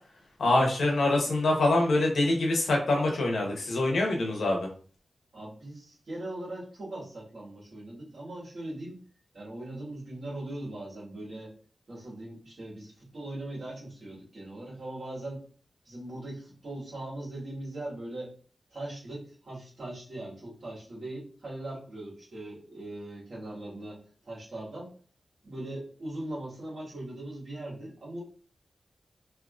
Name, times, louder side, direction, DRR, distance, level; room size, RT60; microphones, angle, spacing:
voice 1, 0.4-4.7, left 2 dB, 80° left, 1 dB, 0.9 m, -25 dB
voice 2, 5.3-9.0 9.3-11.5 11.9-15.4 15.8-18.3 18.7-24.9 25.4-28.2, right 1 dB, 50° right, -6 dB, 1.7 m, -40 dB
3.6 x 2.7 x 2.5 m, 0.43 s
wide cardioid pair, 180°, 0 cm